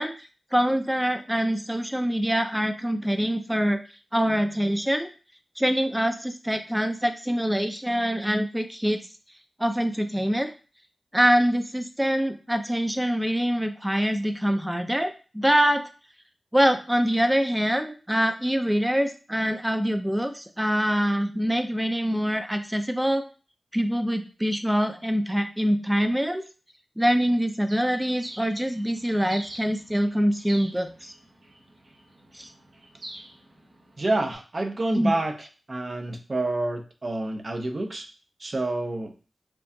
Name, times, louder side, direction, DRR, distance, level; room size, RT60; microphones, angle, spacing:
voice 1, 0.0-3.8 4.1-5.1 5.6-9.0 9.6-10.5 11.1-15.8 16.5-23.2 23.7-26.4 27.0-31.1 32.3-32.5 34.9-35.1, equal, 10° right, 8 dB, 0.6 m, -24 dB
Bird, 27.7-34.3, right 1 dB, 70° right, 1.0 m, -45 dB
voice 2, 34.0-38.0 38.4-39.1, right 2 dB, 50° right, 5 dB, 0.7 m, -28 dB
4.5 x 2.4 x 2.7 m, 0.36 s
cardioid pair, 40°, 0 cm